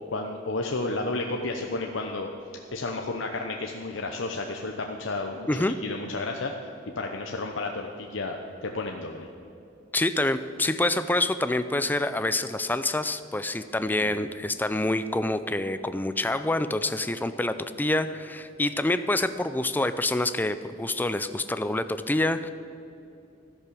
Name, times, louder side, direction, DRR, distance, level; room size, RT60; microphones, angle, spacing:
voice 1, 0.1-2.3 2.7-6.5 7.0-9.3 13.9-14.2, left 2 dB, 85° left, 3 dB, 0.9 m, -32 dB
voice 2, 9.9-22.5, left 2 dB, 10° left, 11 dB, 0.5 m, -27 dB
13.0 x 10.5 x 6.9 m, 2.7 s
head